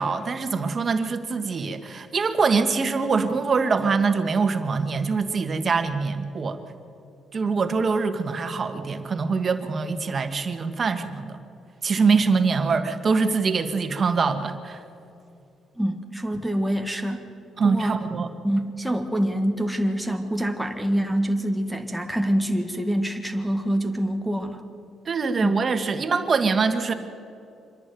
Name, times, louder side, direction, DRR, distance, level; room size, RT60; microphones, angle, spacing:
voice 1, 0.0-6.6 7.3-11.4 11.8-14.8 17.6-18.3 25.1-26.9, right 4 dB, 40° right, 7 dB, 1.7 m, -24 dB
voice 2, 15.8-17.3 17.6-18.0 18.4-24.6 25.4-25.6, equal, ahead, 3 dB, 1.6 m, -25 dB
25.5 x 11.0 x 9.4 m, 2.6 s
cardioid pair, 100°, 0 cm